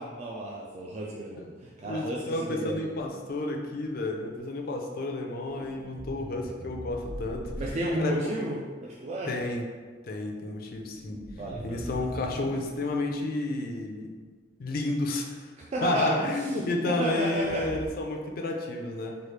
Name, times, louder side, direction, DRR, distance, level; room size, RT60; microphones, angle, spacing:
voice 1, 0.0-2.9 7.6-9.4 11.4-11.8 15.6-16.5 16.9-17.8, right 1 dB, 40° right, -4 dB, 0.3 m, -32 dB
voice 2, 1.8-7.4 8.0-8.4 9.3-9.6 10.0-11.2 11.6-14.1 14.6-15.5 15.8-19.2, left 2 dB, 55° left, 2 dB, 0.4 m, -31 dB
sound 1, 5.4-8.0 10.5-13.1 17.3-17.9, equal, 85° right, 0.6 m, -42 dB
3.2 x 2.3 x 3.1 m, 1.5 s
head